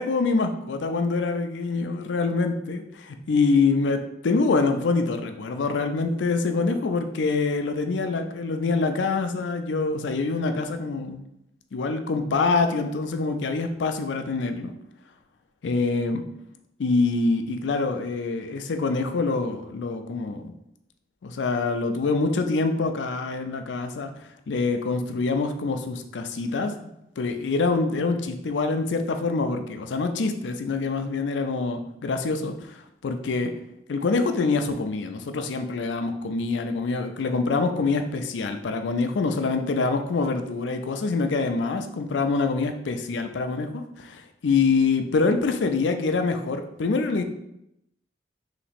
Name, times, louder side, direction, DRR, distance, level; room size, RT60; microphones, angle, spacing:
voice 1, 0.0-11.2 11.7-14.7 15.6-16.2 16.8-20.5 21.2-24.1 24.5-26.9 27.2-33.5 33.9-47.2, left 3 dB, 80° left, 7 dB, 0.4 m, -25 dB
3.2 x 2.9 x 4.2 m, 0.80 s
head